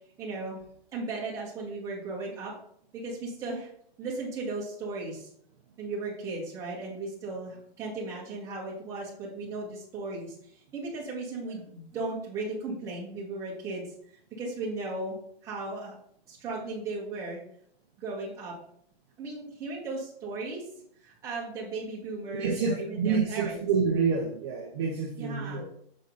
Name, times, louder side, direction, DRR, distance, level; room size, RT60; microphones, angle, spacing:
voice 1, 0.2-0.6 0.9-2.6 2.9-3.7 4.0-5.3 5.8-10.3 10.7-13.8 14.4-15.2 15.4-15.9 16.3-17.4 18.0-18.5 19.2-20.6 21.0-23.6 25.2-25.6, right 3 dB, 10° right, -5 dB, 1.6 m, -36 dB
voice 2, 22.3-25.7, right 5 dB, 25° right, -1 dB, 0.8 m, -28 dB
6.4 x 4.1 x 5.4 m, 0.66 s
hypercardioid pair, 175°, 31 cm